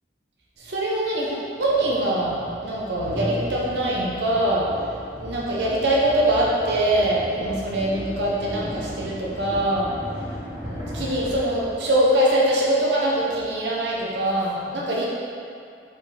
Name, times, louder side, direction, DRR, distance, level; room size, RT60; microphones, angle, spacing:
sound 1, 0.6-0.7 1.6-12.2, equal, 15° right, 1.2 m, -36 dB
voice 1, 0.6-4.7 5.2-9.9 10.6-15.1, right 1 dB, 65° right, -5 dB, 1.0 m, -23 dB
5.2 x 4.5 x 4.9 m, 2.5 s
head